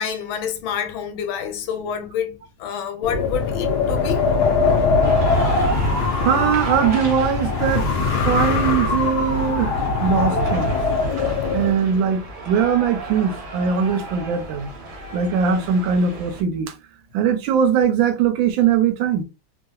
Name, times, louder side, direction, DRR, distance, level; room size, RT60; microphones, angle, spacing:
voice 1, 0.0-4.3, left 8 dB, 90° left, 1.4 m, -28 dB
Wind, 3.0-11.7, left 4 dB, 65° left, 1.1 m, -21 dB
sound 1, 5.0-16.4, right 2 dB, 45° right, 0.6 m, -35 dB
voice 2, 6.2-7.9 8.2-10.8 11.5-14.7 15.1-16.7 17.1-19.2, right 7 dB, 80° right, 1.3 m, -20 dB
3.4 x 2.7 x 2.3 m
omnidirectional pair, 2.2 m